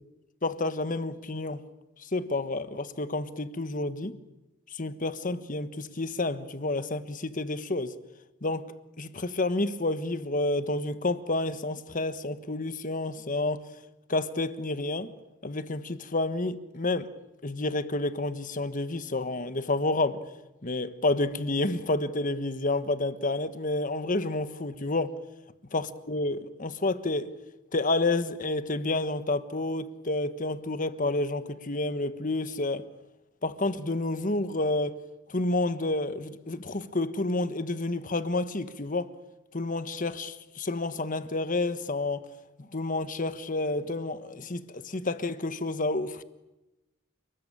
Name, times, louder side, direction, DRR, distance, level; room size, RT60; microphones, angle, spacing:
voice 1, 0.4-1.6 2.0-4.2 4.7-7.9 8.4-8.7 9.0-13.6 14.1-15.1 15.4-17.1 17.4-20.2 20.6-25.1 25.7-27.3 27.7-32.8 33.4-35.0 35.3-39.1 39.5-42.3 42.6-46.2, left 2 dB, 40° left, 1.4 m, -29 dB
29.5 x 20.5 x 8.9 m
head